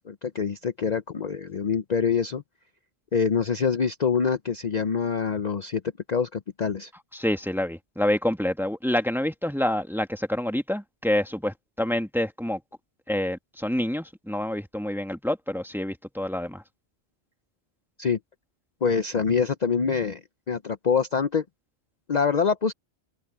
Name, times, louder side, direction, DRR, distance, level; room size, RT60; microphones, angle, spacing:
voice 1, 0.0-2.4 3.1-5.8 6.1-6.9 18.0-18.2 18.8-20.2 20.5-21.4 22.1-22.7, left 6 dB, 45° left, 0.7 m, -25 dB
voice 2, 7.1-12.6 13.1-16.6, left 1 dB, ahead, 1.3 m, -27 dB
omnidirectional pair, 1.1 m